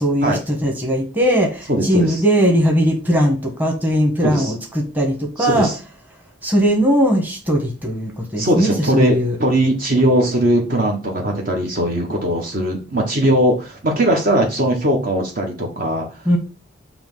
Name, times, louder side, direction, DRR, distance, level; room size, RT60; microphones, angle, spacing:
voice 1, 0.0-5.7 6.4-9.4 16.2-16.4, equal, 10° right, 0 dB, 1.3 m, -19 dB
voice 2, 1.7-2.2 4.2-4.5 5.4-5.7 8.4-16.1, right 1 dB, 45° right, 1 dB, 1.0 m, -19 dB
7.5 x 3.1 x 5.3 m, 0.34 s
head